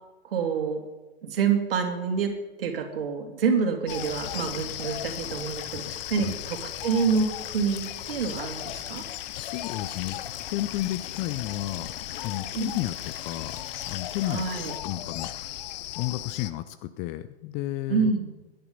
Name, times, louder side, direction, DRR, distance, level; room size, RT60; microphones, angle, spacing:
voice 1, 0.2-0.8 1.2-2.3 2.6-9.0 12.5-12.8 14.3-14.7 17.9-18.3, right 6 dB, 60° right, 4 dB, 3.0 m, -27 dB
sound 1, 3.9-14.8, left 9 dB, 55° left, 1.4 m, -43 dB
sound 2, 3.9-16.5, left 13 dB, 40° left, 0.9 m, -37 dB
voice 2, 5.7-6.3 9.4-11.9 12.2-13.6 13.9-14.4 14.8-15.6 16.0-18.1, left 15 dB, 20° left, 12 dB, 0.5 m, -32 dB
22.5 x 10.5 x 5.4 m, 1.1 s
figure-of-eight pair, 110°, 33 cm